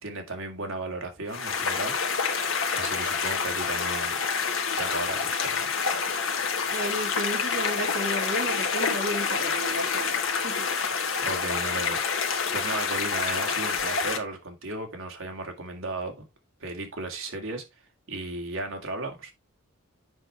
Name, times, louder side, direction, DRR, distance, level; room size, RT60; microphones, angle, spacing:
voice 1, 0.0-2.0 2.7-4.2 4.8-5.7 10.9-16.2 16.6-17.6 18.1-19.3, right 2 dB, 70° right, 2.2 m, -35 dB
sound 1, 1.3-14.2, left 5 dB, 65° left, 1.2 m, -27 dB
voice 2, 6.7-10.1 10.4-10.5, right 1 dB, 55° right, 2.4 m, -33 dB
7.8 x 5.9 x 3.3 m
head